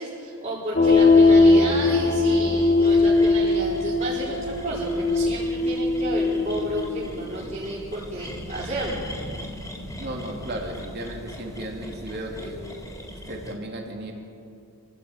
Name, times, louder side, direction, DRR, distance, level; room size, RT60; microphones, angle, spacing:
voice 1, 0.0-9.0, right 1 dB, 30° right, -8 dB, 4.3 m, -32 dB
sound 1, 0.7-7.3, left 3 dB, 35° left, 1.8 m, -20 dB
sound 2, 0.8-13.5, equal, 15° left, 3.7 m, -40 dB
voice 2, 10.0-12.6 13.1-14.1, right 1 dB, 50° right, 0 dB, 3.3 m, -35 dB
26.0 x 16.0 x 9.0 m, 2.5 s
head